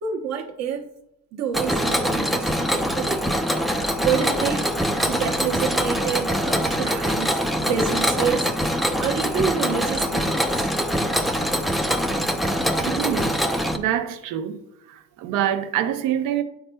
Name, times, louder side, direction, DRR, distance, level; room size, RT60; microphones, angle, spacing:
voice 1, 0.0-0.9 1.3-3.4 4.0-4.7 5.1-8.5 9.0-10.7, right 7 dB, 55° right, 0.9 m, -28 dB
Mechanisms, 1.5-13.8, equal, ahead, 0.3 m, -23 dB
voice 2, 12.7-13.4 13.7-14.6 14.9-16.4, right 11 dB, 85° right, 0.7 m, -25 dB
10.5 x 4.3 x 2.2 m
cardioid pair, 145°, 31 cm